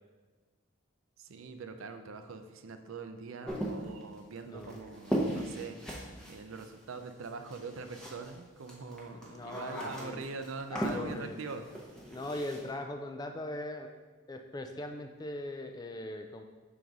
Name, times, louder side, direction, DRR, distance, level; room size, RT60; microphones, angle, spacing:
voice 1, 1.2-5.8 6.3-11.9, right 4 dB, 75° right, 8 dB, 0.5 m, -43 dB
sound 1, 3.5-8.4 8.6-12.7, right 1 dB, 5° left, 0.7 m, -38 dB
voice 2, 4.4-4.8 9.1-10.2 10.7-11.4 12.1-13.9 14.3-16.5, left 1 dB, 20° left, 5 dB, 0.3 m, -40 dB
6.0 x 4.0 x 4.6 m, 1.3 s
head